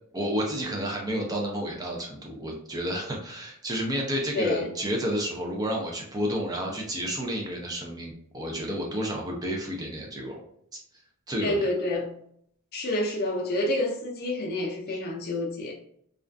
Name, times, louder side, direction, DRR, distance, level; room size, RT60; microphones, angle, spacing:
voice 1, 0.1-10.4 11.3-11.6 14.9-15.0, equal, 15° right, 0.5 m, -30 dB
voice 2, 4.3-4.7 11.4-12.1 12.7-15.7, left 1 dB, 45° left, 0.5 m, -28 dB
2.4 x 2.4 x 2.2 m
head